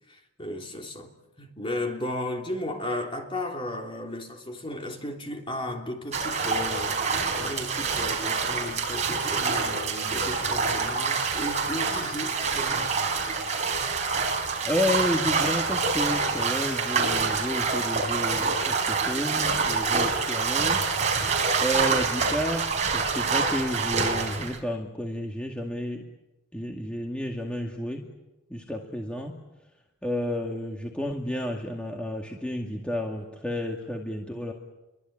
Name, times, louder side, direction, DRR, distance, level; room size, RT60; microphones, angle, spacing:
voice 1, 0.1-1.1 1.4-12.9, left 1 dB, 25° left, 3.3 m, -35 dB
sound 1, 6.1-24.6, right 4 dB, 35° right, 4.7 m, -26 dB
voice 2, 14.6-20.8 21.6-26.0 26.5-28.0 28.5-29.4 30.0-34.5, equal, 5° left, 2.1 m, -31 dB
28.5 x 23.5 x 8.8 m
head